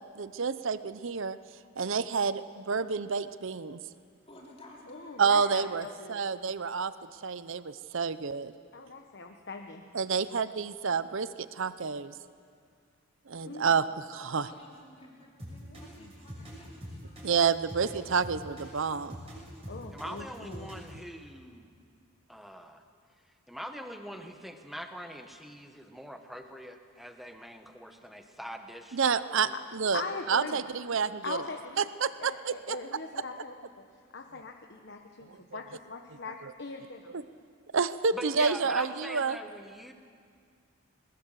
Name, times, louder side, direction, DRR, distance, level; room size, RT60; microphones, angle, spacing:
voice 1, 0.0-1.4 1.8-3.8 5.2-6.9 7.2-8.5 9.9-12.1 13.3-14.5 17.2-19.2 28.9-30.0 30.3-31.4 31.8-32.8 36.4-36.5 37.1-37.2 37.7-39.4, right 5 dB, 60° right, 14 dB, 0.6 m, -29 dB
voice 2, 4.3-5.1 14.4-17.2, left 1 dB, 25° left, -4 dB, 3.8 m, -54 dB
voice 3, 4.9-6.2 8.7-9.8 13.4-13.8 15.7-16.1 19.7-20.7 29.5-29.6 29.9-30.6 31.2-31.8 32.2-33.5 34.1-37.1, left 3 dB, 50° left, 3 dB, 1.1 m, -41 dB
sound 1, 15.4-21.0, equal, 25° right, 6.8 m, -44 dB
voice 4, 19.9-21.7 22.3-22.8 23.5-29.0 29.5-29.6 38.1-39.9, equal, ahead, 5 dB, 1.2 m, -43 dB
21.0 x 20.5 x 7.5 m, 2.1 s
head